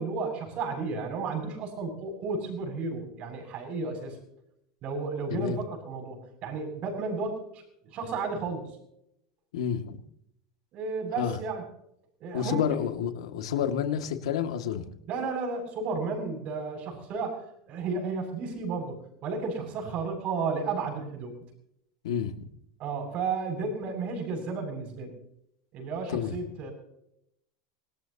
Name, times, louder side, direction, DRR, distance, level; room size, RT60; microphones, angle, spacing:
voice 1, 0.0-4.2 4.8-8.7 10.7-11.6 12.2-12.6 15.1-17.4 17.7-18.9 19.2-21.3 22.8-25.1 25.7-26.7, right 4 dB, 45° right, 7.6 m, -33 dB
voice 2, 9.5-10.0 11.2-11.4 12.3-14.9 22.0-22.3 26.1-26.4, left 8 dB, 85° left, 2.3 m, -29 dB
25.5 x 18.5 x 3.0 m
supercardioid pair, 130°, 3 cm